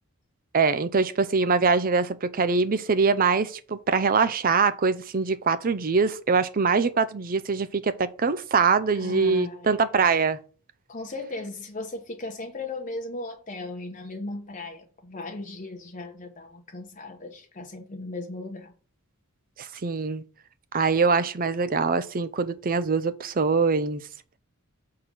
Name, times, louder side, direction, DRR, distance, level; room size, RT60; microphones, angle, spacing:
voice 1, 0.5-10.4 19.6-20.2 20.7-24.0, right 5 dB, 40° right, 0.5 m, -23 dB
voice 2, 8.9-9.8 10.9-18.7, left 2 dB, 35° left, 0.9 m, -37 dB
6.7 x 3.8 x 6.1 m
head